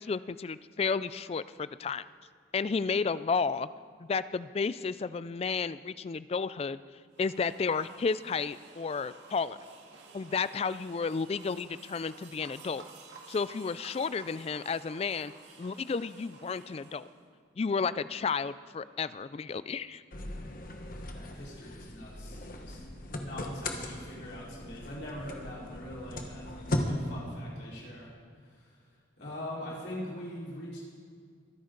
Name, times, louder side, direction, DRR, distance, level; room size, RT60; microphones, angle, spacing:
voice 1, 0.0-2.0 2.5-3.7 4.0-6.8 7.2-9.6 10.1-12.8 13.3-15.3 15.6-17.1 17.6-20.0, left 5 dB, 35° left, 16 dB, 0.3 m, -32 dB
sound 1, 7.1-17.2, right 3 dB, 80° right, 1.9 m, -53 dB
sound 2, 20.1-26.8, left 1 dB, 50° left, 1.3 m, -38 dB
voice 2, 21.1-22.8 23.1-28.1 28.4-28.8 29.2-30.8, left 1 dB, 65° left, -6 dB, 4.3 m, -42 dB
23.5 x 9.7 x 3.9 m, 2.1 s
head